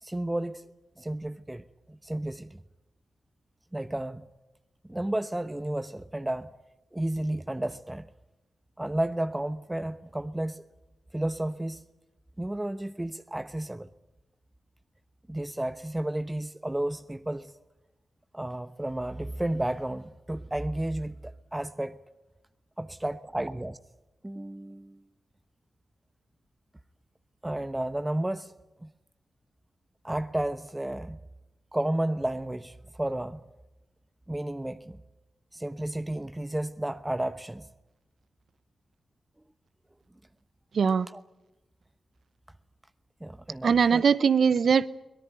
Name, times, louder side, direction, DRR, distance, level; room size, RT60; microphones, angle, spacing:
voice 1, 0.0-0.7 1.0-2.6 3.7-4.3 4.9-6.5 6.9-8.1 8.8-10.6 11.1-11.8 12.4-13.9 15.3-17.5 18.3-22.0 22.8-23.8 24.2-25.0 27.4-28.5 28.8-28.9 30.0-31.2 31.7-33.4 34.3-35.0 35.5-37.7 41.1-41.2 43.2-44.0, right 1 dB, 15° right, 1.0 m, -32 dB
voice 2, 40.7-41.1 43.6-45.0, right 6 dB, 70° right, 0.8 m, -21 dB
23.5 x 18.0 x 9.2 m
supercardioid pair, 40°, 0 cm